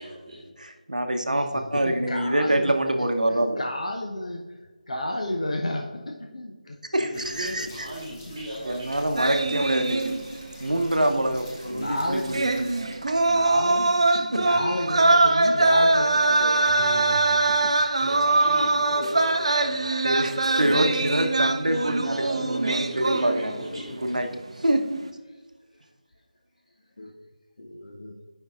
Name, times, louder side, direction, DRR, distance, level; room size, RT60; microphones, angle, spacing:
voice 1, 0.0-0.5 7.0-9.3 18.0-19.9 20.4-21.1 21.7-24.4, right 1 dB, 10° right, -14 dB, 1.5 m, -37 dB
voice 2, 0.6-3.6 6.9-7.9 8.6-10.1 10.6-12.7 13.1-13.2 14.1-14.4 20.0-23.6 24.0-24.3 24.6-24.9, right 1 dB, 70° right, 6 dB, 0.8 m, -25 dB
voice 3, 1.8-2.7 3.3-4.4 4.9-6.8 11.7-12.4 13.3-14.0 14.4-17.4 23.7-24.0 27.0-27.1 27.6-28.2, left 1 dB, 55° left, 1 dB, 0.7 m, -32 dB
sound 1, 7.1-13.5, left 2 dB, 20° left, 0.9 m, -47 dB
sound 2, 9.2-10.5 10.8-10.9 12.2-23.7 24.0-24.3, right 2 dB, 45° right, 0.4 m, -23 dB
11.5 x 5.4 x 2.4 m, 1.3 s
figure-of-eight pair, 160°, 4 cm